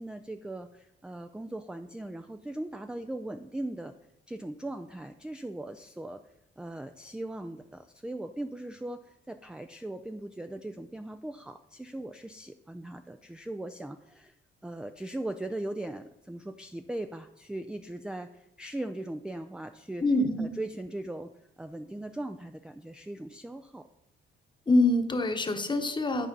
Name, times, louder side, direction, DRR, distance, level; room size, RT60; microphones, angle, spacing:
voice 1, 0.0-3.9 4.3-6.2 6.6-14.3 14.6-20.1 20.4-21.3 21.6-23.9, right 1 dB, 5° right, 8 dB, 0.4 m, -39 dB
voice 2, 20.0-20.5 24.7-26.3, left 2 dB, 25° left, 7 dB, 1.1 m, -25 dB
11.0 x 4.3 x 5.3 m, 0.82 s
cardioid pair, 90°, 20 cm